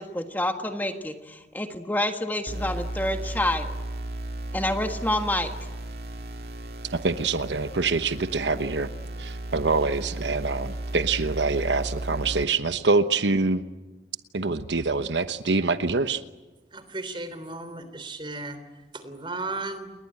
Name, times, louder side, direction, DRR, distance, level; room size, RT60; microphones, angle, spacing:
voice 1, 0.0-3.7 4.5-5.5, left 1 dB, 10° left, 6 dB, 1.6 m, -28 dB
sound 1, 2.5-12.4, right 1 dB, 60° right, 2.4 m, -35 dB
voice 2, 6.9-8.9 9.2-13.6 14.3-16.2, right 3 dB, 80° right, 11 dB, 1.1 m, -25 dB
voice 3, 16.7-18.6 18.9-19.9, right 2 dB, 30° right, 11 dB, 3.4 m, -35 dB
29.5 x 21.5 x 8.9 m, 1.2 s
head